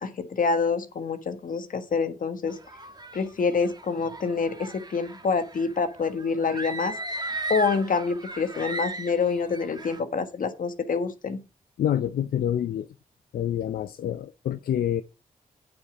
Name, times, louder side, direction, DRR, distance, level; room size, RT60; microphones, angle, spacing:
voice 1, 0.0-2.6 3.1-7.0 7.5-11.4, left 5 dB, 65° left, 1.5 m, -27 dB
sound 1, 2.5-10.0, right 2 dB, 25° right, 1.4 m, -37 dB
voice 2, 11.8-12.9 13.3-15.0, left 10 dB, 85° left, 0.5 m, -27 dB
8.7 x 7.4 x 5.0 m
cardioid pair, 60°, 15 cm